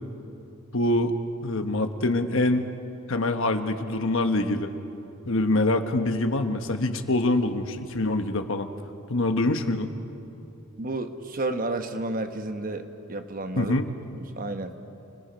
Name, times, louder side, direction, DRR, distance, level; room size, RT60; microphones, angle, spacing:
voice 1, 0.7-1.1 1.4-2.7 3.1-4.7 5.3-8.7 9.1-9.9 13.6-13.9, left 2 dB, 60° left, 7 dB, 1.2 m, -25 dB
voice 2, 10.8-13.7 14.1-14.7, right 2 dB, 40° right, 7 dB, 1.1 m, -31 dB
30.0 x 20.0 x 5.2 m, 2.8 s
head